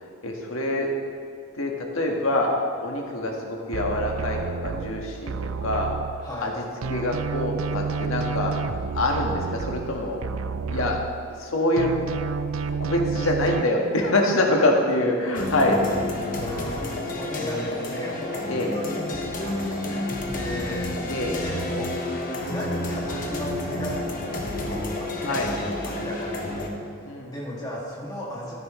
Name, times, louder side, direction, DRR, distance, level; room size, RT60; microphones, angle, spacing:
voice 1, 0.2-0.9 1.5-2.5 2.8-5.3 5.6-5.9 6.4-6.5 6.9-8.5 8.9-10.2 10.7-11.0 11.4-11.9 12.8-15.8 18.5-18.7 21.1-21.4 25.2-25.5 27.0-27.3, left 1 dB, 80° left, 0 dB, 1.6 m, -25 dB
sound 1, 3.7-6.5 6.8-11.5 11.8-13.6, right 5 dB, 85° right, 0.5 m, -30 dB
voice 2, 6.2-6.5 16.3-20.0 20.3-25.4 25.8-26.5 26.9-28.5, equal, 20° left, -5 dB, 2.3 m, -36 dB
sound 2, 15.4-26.7, left 1 dB, 40° left, 1.2 m, -30 dB
13.5 x 10.5 x 3.2 m, 2.5 s
head